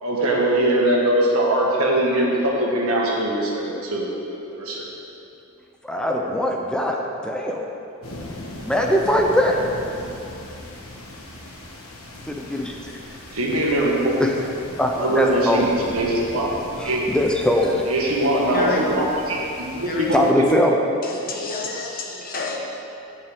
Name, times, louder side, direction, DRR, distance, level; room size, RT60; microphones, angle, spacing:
voice 1, 0.0-4.9 13.3-14.2 15.0-15.7 15.9-16.5 16.8-17.2 17.9-20.6, right 1 dB, 90° right, -3 dB, 1.7 m, -22 dB
voice 2, 5.8-7.6 8.6-9.6 12.3-13.0 14.2-14.3 14.8-15.8 16.8-17.8 20.1-20.8, left 1 dB, 5° left, 0 dB, 0.5 m, -21 dB
sound 1, 8.0-20.3, left 1 dB, 80° left, 1.3 m, -39 dB
voice 3, 18.5-18.9 19.8-20.1 21.0-22.6, left 3 dB, 40° left, -1 dB, 1.1 m, -29 dB
15.0 x 5.5 x 3.6 m, 2.7 s
head